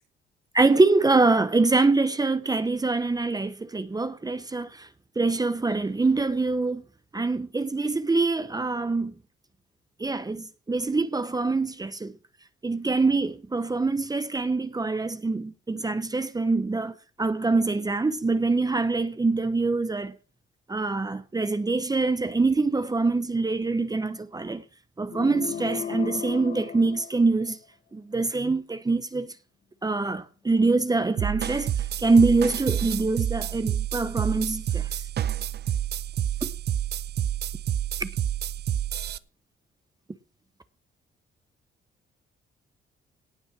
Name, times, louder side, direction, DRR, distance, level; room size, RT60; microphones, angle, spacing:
voice 1, 0.5-4.9 5.2-6.8 7.1-9.2 10.0-12.1 12.6-20.1 20.7-24.6 25.0-27.6 27.9-29.3 29.8-35.0 36.4-36.5 38.0-38.1, right 3 dB, 20° right, 1.0 m, -24 dB
sound 1, 25.1-27.7, left 8 dB, 55° left, 1.5 m, -36 dB
sound 2, 31.2-39.2, right 10 dB, 55° right, 0.7 m, -29 dB
18.0 x 6.2 x 6.3 m
cardioid pair, 90°, 20 cm